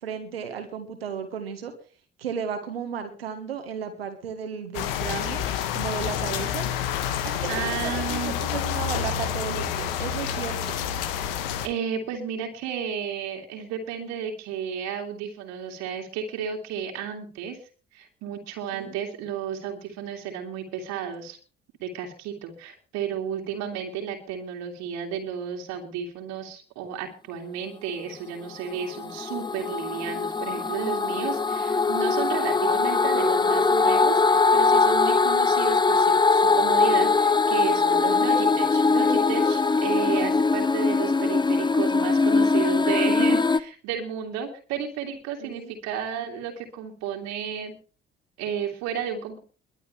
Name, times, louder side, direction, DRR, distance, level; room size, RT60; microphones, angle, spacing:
voice 1, 0.0-1.7 2.2-5.4 5.7-6.7 7.2-10.7 18.7-18.9 45.4-45.7, right 7 dB, 80° right, 7 dB, 1.7 m, -34 dB
sound 1, 4.7-11.7, left 9 dB, 70° left, 1.4 m, -28 dB
voice 2, 7.5-8.4 11.6-17.6 17.9-21.4 21.8-47.7 48.4-49.4, right 7 dB, 60° right, 2 dB, 2.5 m, -32 dB
sound 2, 28.5-43.6, left 4 dB, 15° left, 0.9 m, -22 dB
22.5 x 10.5 x 3.3 m, 0.38 s
figure-of-eight pair, 45°, 30 cm